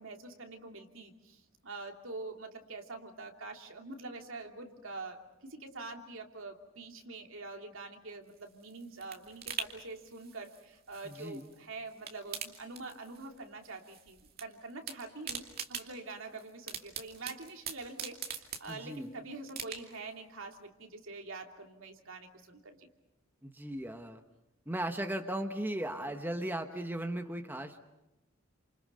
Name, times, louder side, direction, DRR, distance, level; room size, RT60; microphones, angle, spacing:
voice 1, 0.0-22.9, right 3 dB, 75° right, 3 dB, 2.9 m, -45 dB
sound 1, 8.3-11.6 11.9-13.4 13.6-14.5 14.7-19.1 19.5-20.1 20.5-20.6, right 7 dB, 50° right, 2.5 m, -43 dB
voice 2, 18.7-19.1 23.4-24.2 24.7-27.8, right 1 dB, 10° right, 6 dB, 1.2 m, -37 dB
29.0 x 27.5 x 5.5 m, 0.97 s
head